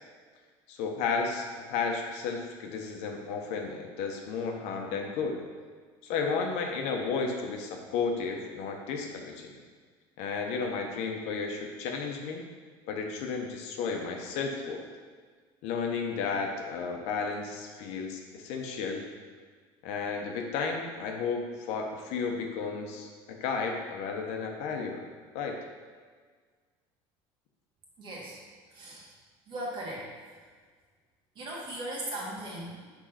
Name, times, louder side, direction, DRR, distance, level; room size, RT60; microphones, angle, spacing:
voice 1, 0.7-5.4 6.1-9.5 10.2-12.4 12.9-14.9 15.6-19.0 19.8-25.1 25.3-25.6, left 5 dB, 70° left, 2 dB, 0.9 m, -33 dB
voice 2, 28.0-28.4 28.7-29.1 29.5-30.1 31.4-32.9, right 1 dB, 45° right, -4 dB, 1.9 m, -38 dB
5.0 x 3.8 x 5.6 m, 1.6 s
cardioid pair, 125°, 12 cm